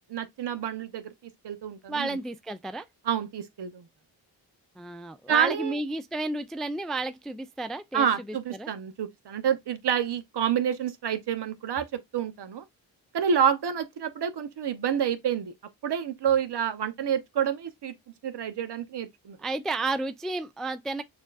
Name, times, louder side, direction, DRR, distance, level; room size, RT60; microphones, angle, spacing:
voice 1, 0.1-1.1 1.4-2.2 3.0-3.9 5.3-5.8 7.9-11.9 12.1-12.6 13.1-15.5 15.8-17.9 18.2-19.4, right 8 dB, 55° right, 0.8 m, -28 dB
voice 2, 1.9-2.9 4.8-8.7 19.4-21.0, right 2 dB, ahead, 0.4 m, -32 dB
6.2 x 2.5 x 2.4 m
supercardioid pair, 40°, 49 cm